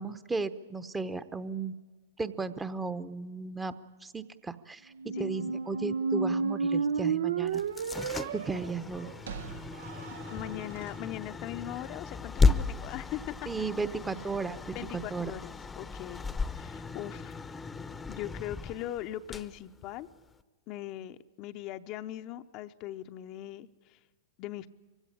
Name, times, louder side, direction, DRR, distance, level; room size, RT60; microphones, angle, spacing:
voice 1, 0.0-1.7 2.2-3.8 4.0-7.6 8.3-9.1 13.5-15.3, right 4 dB, 15° right, 12 dB, 0.9 m, -35 dB
sound 1, 5.0-10.9, right 5 dB, 75° right, 0.7 m, -32 dB
sound 2, 7.5-20.4, left 4 dB, 15° left, 0.8 m, -34 dB
voice 2, 10.3-13.5 14.7-16.2 16.5-17.6 18.1-20.1 20.7-24.0 24.4-24.7, left 13 dB, 45° left, 9 dB, 0.7 m, -40 dB
24.0 x 16.5 x 9.9 m, 1.3 s
hypercardioid pair, 110°, 0 cm